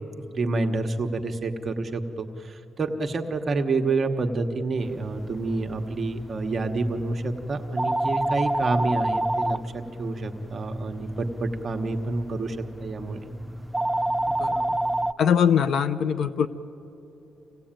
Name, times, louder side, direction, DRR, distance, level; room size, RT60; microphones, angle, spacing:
voice 1, 0.3-13.2, right 3 dB, 40° right, 4 dB, 1.2 m, -28 dB
sound 1, 4.8-15.1, right 1 dB, 5° right, 0.4 m, -30 dB
voice 2, 15.2-16.5, left 7 dB, 70° left, 12 dB, 0.7 m, -22 dB
26.0 x 17.0 x 8.9 m, 2.9 s
cardioid pair, 115°, 0 cm